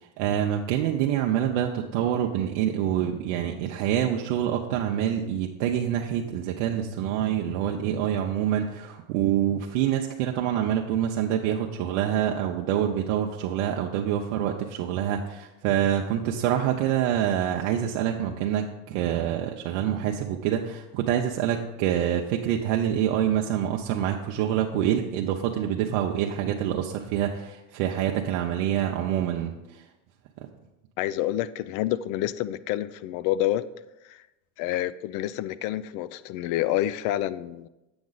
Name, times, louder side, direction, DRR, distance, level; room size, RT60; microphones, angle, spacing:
voice 1, 0.2-29.5, right 10 dB, 75° right, 1 dB, 0.8 m, -26 dB
voice 2, 31.0-33.6 34.1-34.2 34.6-37.7, left 13 dB, 55° left, 17 dB, 0.5 m, -28 dB
8.7 x 6.1 x 4.0 m, 0.98 s
supercardioid pair, 120°, 37 cm